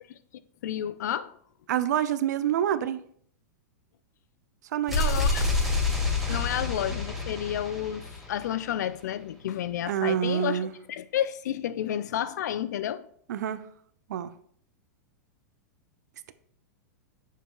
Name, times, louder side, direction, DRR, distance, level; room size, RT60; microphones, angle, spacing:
voice 1, 0.6-1.3 4.9-5.4 6.3-13.0, left 10 dB, 75° left, 0.4 m, -31 dB
voice 2, 1.7-3.0 4.7-5.0 6.2-6.4 9.9-10.7 13.3-13.6 14.1-14.3, right 10 dB, 75° right, 0.5 m, -27 dB
sound 1, 4.9-8.7, left 2 dB, ahead, 2.0 m, -28 dB
6.6 x 6.4 x 2.3 m
hypercardioid pair, 120°, 9 cm